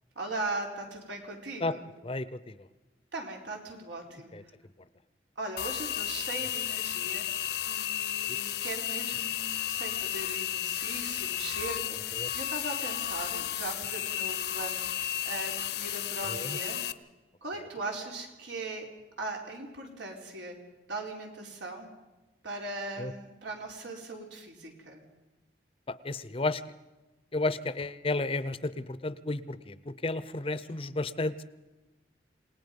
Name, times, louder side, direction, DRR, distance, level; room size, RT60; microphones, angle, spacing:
voice 1, 0.2-1.8 3.1-4.3 5.4-16.8 17.4-18.9 19.2-20.5 20.9-21.9 22.4-25.0, right 2 dB, 85° right, 0 dB, 4.3 m, -39 dB
voice 2, 2.0-2.7 4.3-4.4 8.2-8.4 12.1-12.3 16.3-16.6 23.0-23.1 25.9-26.6 27.3-31.4, left 2 dB, 30° left, 15 dB, 0.6 m, -32 dB
sound 1, 5.6-16.9, left 11 dB, 65° left, 0.8 m, -33 dB
28.0 x 18.5 x 5.4 m, 1.1 s
head